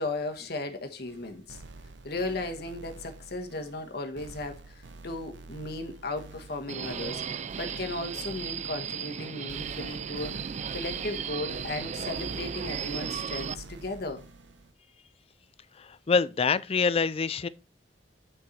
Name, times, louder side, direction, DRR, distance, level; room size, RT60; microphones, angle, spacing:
voice 1, 0.0-1.6 2.0-10.4 10.7-14.2, left 2 dB, 60° left, 1.3 m, -36 dB
sound 1, 1.1-14.7, right 3 dB, 80° right, 0.7 m, -47 dB
Subway metro underground, 6.7-13.5, right 7 dB, 40° right, 0.4 m, -35 dB
voice 2, 15.8-17.5, left 5 dB, 35° left, 0.4 m, -26 dB
9.0 x 4.7 x 4.2 m
head